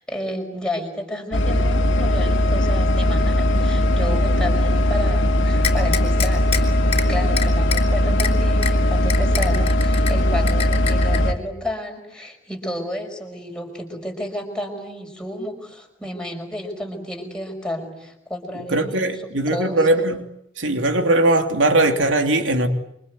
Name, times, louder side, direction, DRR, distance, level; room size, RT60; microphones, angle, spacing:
voice 1, 0.1-19.8, left 1 dB, 5° left, 5.7 m, -31 dB
sound 1, 1.3-11.3, equal, 90° left, 2.4 m, -19 dB
sound 2, 5.6-6.6 6.9-7.0 7.4-7.8 8.2-8.3 8.6-8.7 9.1-10.1 10.5-11.2, left 8 dB, 30° left, 3.4 m, -25 dB
voice 2, 18.7-20.2 20.6-22.7, right 2 dB, 80° right, 3.1 m, -19 dB
28.5 x 25.0 x 8.2 m
head